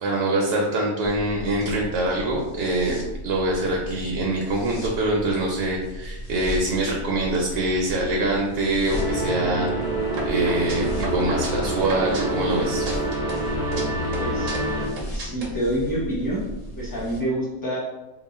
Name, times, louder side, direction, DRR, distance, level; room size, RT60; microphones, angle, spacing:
voice 1, 0.0-3.0 3.2-9.7 10.3-12.9, right 1 dB, 85° right, -1 dB, 1.2 m, -24 dB
sound 1, 1.0-17.2, equal, 60° left, 0.3 m, -36 dB
sound 2, 8.9-14.9, right 1 dB, ahead, 1.2 m, -26 dB
sound 3, 10.1-12.6 12.9-13.8 14.1-15.5, right 3 dB, 60° right, 1.1 m, -34 dB
voice 2, 14.2-14.6 15.1-16.4 16.8-17.8, right 1 dB, 15° left, -6 dB, 0.8 m, -27 dB
2.9 x 2.4 x 4.0 m, 1.0 s
omnidirectional pair, 1.7 m